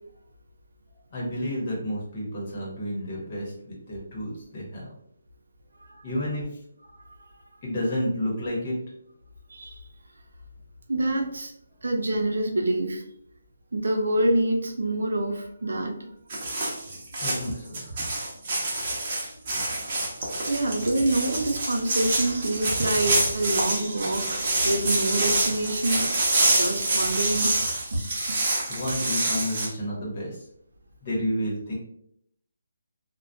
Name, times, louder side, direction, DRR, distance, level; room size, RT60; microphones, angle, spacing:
voice 1, 1.1-4.9 6.0-6.6 7.6-8.8 17.2-17.8 28.7-30.5 31.0-31.7, equal, 35° left, -4 dB, 1.0 m, -30 dB
voice 2, 9.5-9.8 10.9-11.5 11.8-13.0 13.7-16.0 20.5-26.1 26.5-27.5 27.9-28.0, right 1 dB, 85° right, 3 dB, 0.5 m, -26 dB
sound 1, 16.3-29.7, right 2 dB, 35° right, 0.7 m, -26 dB
2.2 x 2.2 x 2.6 m, 0.71 s
hypercardioid pair, 165°, 0 cm